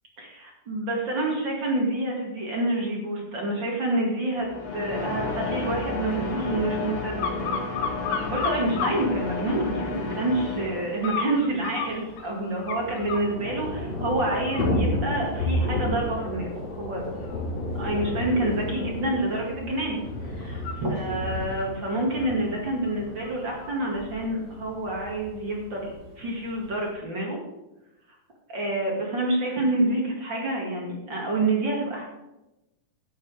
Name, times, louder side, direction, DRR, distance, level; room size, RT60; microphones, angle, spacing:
voice 1, 0.2-4.5 4.7-7.4 8.1-17.0 17.7-27.4 28.5-32.0, right 1 dB, 35° right, -2 dB, 2.5 m, -28 dB
sound 1, 4.4-11.3, left 3 dB, 90° left, 4.0 m, -32 dB
sound 2, 7.2-9.0 9.5-10.1 11.0-13.3 13.8-14.0 14.4-23.7 24.1-24.2, left 6 dB, 70° left, 2.7 m, -36 dB
Thunder / Rain, 10.3-10.4 10.6-10.7 11.0-26.9, left 1 dB, 50° left, 5.9 m, -32 dB
12.0 x 8.7 x 5.0 m, 0.97 s
omnidirectional pair, 4.0 m